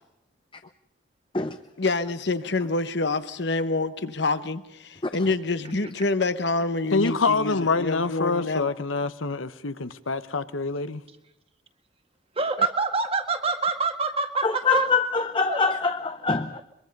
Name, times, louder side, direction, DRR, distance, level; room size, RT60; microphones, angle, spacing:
voice 1, 1.8-8.7, left 3 dB, 60° left, 1.1 m, -27 dB
voice 2, 6.9-11.0, left 3 dB, 85° left, 1.0 m, -26 dB
voice 3, 12.3-14.9 15.5-15.6, right 4 dB, 30° right, 1.8 m, -26 dB
voice 4, 14.4-16.6, left 4 dB, 25° left, 0.7 m, -24 dB
23.0 x 23.0 x 5.4 m
head